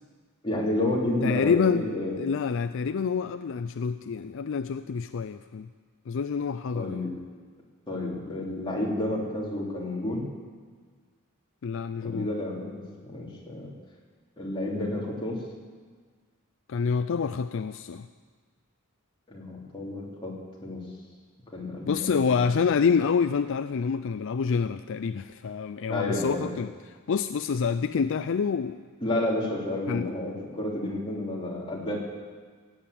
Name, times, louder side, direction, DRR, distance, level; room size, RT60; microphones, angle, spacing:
voice 1, 0.4-2.2 6.7-7.1 7.9-10.2 12.0-13.7 14.4-15.4 19.3-20.3 20.6-20.8 21.5-22.4 25.9-26.5 29.0-32.0, left 1 dB, 25° left, -4 dB, 3.1 m, -30 dB
voice 2, 1.2-1.9 2.2-5.7 6.1-7.0 11.6-12.3 16.7-18.1 21.9-28.8 29.9-30.1, left 6 dB, 65° left, 11 dB, 0.4 m, -27 dB
17.0 x 8.9 x 8.4 m, 1.6 s
head